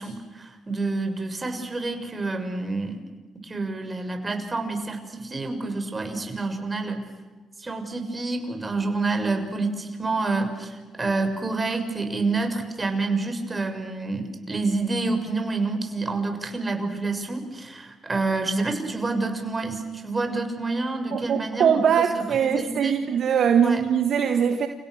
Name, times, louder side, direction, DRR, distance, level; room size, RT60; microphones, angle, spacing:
voice 1, 0.0-3.0 3.4-7.1 7.6-22.9 23.6-23.8, right 3 dB, 30° right, 6.5 m, -28 dB
voice 2, 21.1-24.7, right 7 dB, 60° right, 1.6 m, -21 dB
29.5 x 29.5 x 6.7 m
hypercardioid pair, 45°, 0 cm